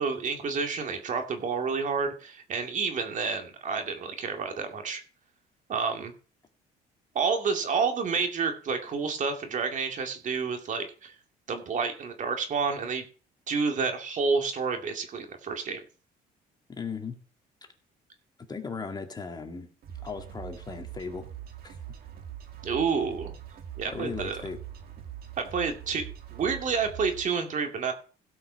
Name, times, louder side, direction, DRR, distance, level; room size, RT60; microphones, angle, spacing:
voice 1, 0.0-5.0 5.7-6.1 7.1-11.1 11.5-13.0 13.5-15.8 22.6-23.3 23.8-24.4 25.4-27.9, right 5 dB, 50° right, 5 dB, 2.2 m, -29 dB
voice 2, 16.7-17.2 18.5-19.7 20.0-21.2 21.6-21.8 23.9-24.6, left 5 dB, 25° left, 4 dB, 2.0 m, -37 dB
sound 1, 19.8-27.3, right 10 dB, 65° right, 1.8 m, -43 dB
16.5 x 5.8 x 5.7 m, 0.39 s
cardioid pair, 110°, 17 cm